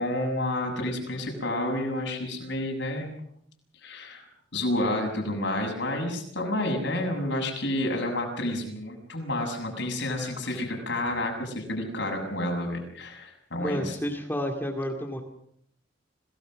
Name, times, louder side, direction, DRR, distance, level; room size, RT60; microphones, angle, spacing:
voice 1, 0.0-3.1 3.8-4.3 4.5-14.0, left 1 dB, 65° left, 2 dB, 7.0 m, -30 dB
voice 2, 13.6-15.2, equal, 10° left, 2 dB, 2.3 m, -30 dB
27.0 x 18.5 x 6.5 m, 0.68 s
head